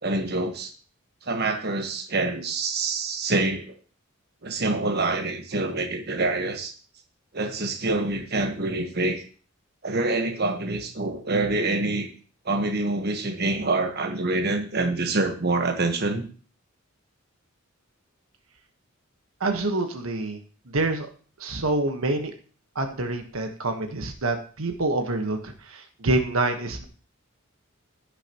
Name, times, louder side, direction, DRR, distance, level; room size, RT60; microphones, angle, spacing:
voice 1, 0.0-0.7 1.3-3.7 4.4-6.7 7.3-9.2 9.8-12.1 12.4-16.3, right 2 dB, 50° right, 4 dB, 1.3 m, -26 dB
voice 2, 19.4-20.4 20.7-21.1 21.4-22.3 22.7-26.8, right 2 dB, 85° right, 5 dB, 1.3 m, -26 dB
16.5 x 6.9 x 3.0 m, 0.39 s
head